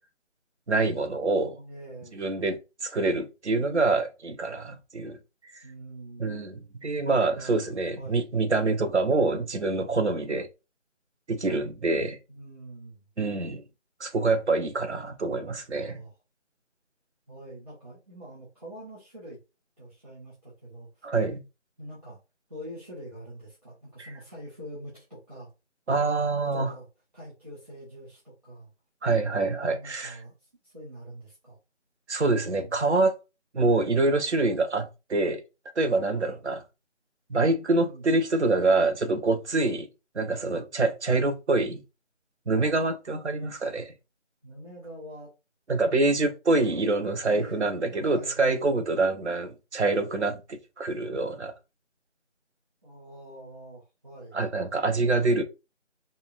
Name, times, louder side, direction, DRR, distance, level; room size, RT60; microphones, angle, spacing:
voice 1, 0.7-1.5 2.1-5.2 5.5-5.6 6.2-10.5 11.3-12.2 13.2-13.6 14.0-16.0 21.0-21.4 24.0-24.1 25.9-26.7 29.0-30.1 32.1-33.1 33.5-35.4 35.8-36.6 37.3-39.9 40.1-41.8 42.5-43.9 45.7-51.5 54.3-55.4, right 3 dB, 65° right, 0.8 m, -26 dB
voice 2, 1.3-2.2 5.6-6.4 7.3-7.6 8.0-8.3 11.9-12.0 12.3-13.0 15.8-16.1 17.3-19.4 19.8-21.0 21.8-22.2 22.5-25.5 26.3-26.9 27.1-28.7 29.7-31.6 32.5-32.8 37.8-38.0 44.4-45.3 45.8-46.0 47.3-48.4 52.8-54.4, right 1 dB, 30° right, 1.5 m, -45 dB
5.3 x 2.1 x 2.5 m
figure-of-eight pair, 175°, 37 cm